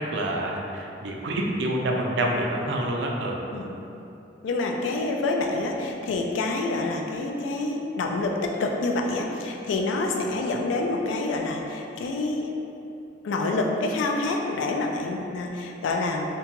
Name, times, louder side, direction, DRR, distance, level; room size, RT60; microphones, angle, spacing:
voice 1, 0.0-3.4, right 1 dB, 65° right, 0 dB, 0.3 m, -27 dB
voice 2, 4.4-12.5 13.2-16.3, left 2 dB, 80° left, 1 dB, 0.3 m, -27 dB
2.8 x 2.2 x 2.8 m, 2.8 s
head